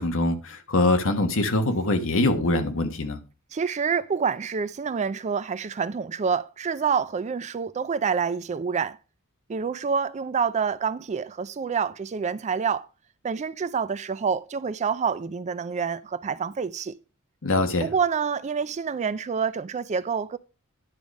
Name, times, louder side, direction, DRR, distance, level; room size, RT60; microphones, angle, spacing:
voice 1, 0.0-3.2 17.4-17.9, left 2 dB, 60° left, 1.3 m, -23 dB
voice 2, 3.5-9.0 9.5-12.9 13.2-17.0 17.8-20.4, right 6 dB, 30° right, 0.4 m, -27 dB
10.5 x 4.9 x 5.2 m
head